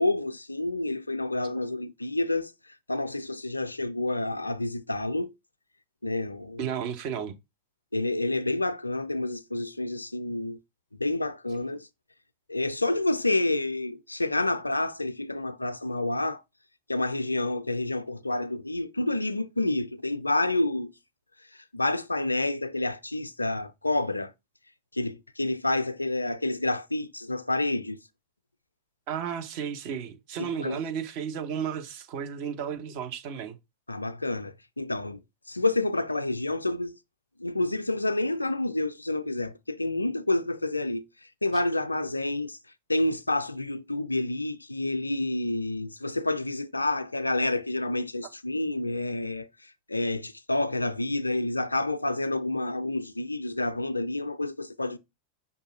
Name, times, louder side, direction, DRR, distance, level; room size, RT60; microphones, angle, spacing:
voice 1, 0.0-2.5 2.9-5.3 6.0-6.6 7.9-10.6 11.0-11.9 12.5-16.4 16.9-20.9 21.7-24.3 24.9-28.0 30.4-30.8 33.9-35.2 35.5-36.9 37.4-41.0 41.4-42.6 42.9-49.5 49.9-55.0, left 2 dB, 85° left, 0.4 m, -29 dB
voice 2, 6.6-7.4 11.7-11.8 29.1-33.6, right 8 dB, 45° right, 0.8 m, -33 dB
5.4 x 2.3 x 4.0 m
figure-of-eight pair, 90°, 0 cm